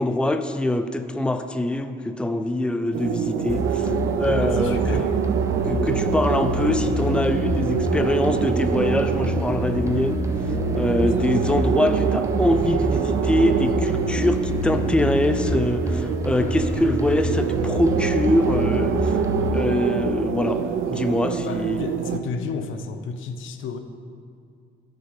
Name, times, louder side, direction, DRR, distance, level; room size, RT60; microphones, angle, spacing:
voice 1, 0.0-3.9 4.2-5.0 5.6-10.2 10.7-19.2 19.5-21.8, left 1 dB, 5° left, 9 dB, 0.5 m, -24 dB
sound 1, 2.9-22.2, right 7 dB, 80° right, 0.6 m, -26 dB
sound 2, 3.5-19.5, right 1 dB, 15° right, 0.9 m, -27 dB
voice 2, 4.4-5.1 10.9-11.4 16.4-16.7 21.3-23.8, left 5 dB, 80° left, 9 dB, 0.7 m, -33 dB
16.5 x 6.6 x 3.6 m, 2.4 s
cardioid pair, 90°, 20 cm